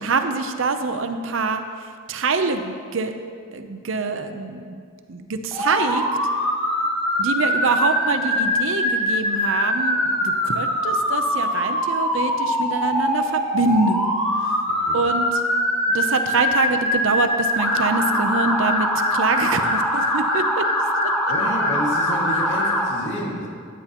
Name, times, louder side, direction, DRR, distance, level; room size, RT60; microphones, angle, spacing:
voice 1, 0.0-3.1 3.5-4.8 5.1-6.0 7.2-14.1 14.9-15.4 15.9-20.7 21.0-21.1, right 3 dB, 65° right, 7 dB, 0.7 m, -25 dB
Motor vehicle (road) / Siren, 5.5-22.8, left 1 dB, 5° left, 2.1 m, -22 dB
voice 2, 14.7-15.0 21.3-23.5, equal, 60° left, -3 dB, 2.1 m, -30 dB
14.5 x 10.0 x 3.0 m, 2.1 s
head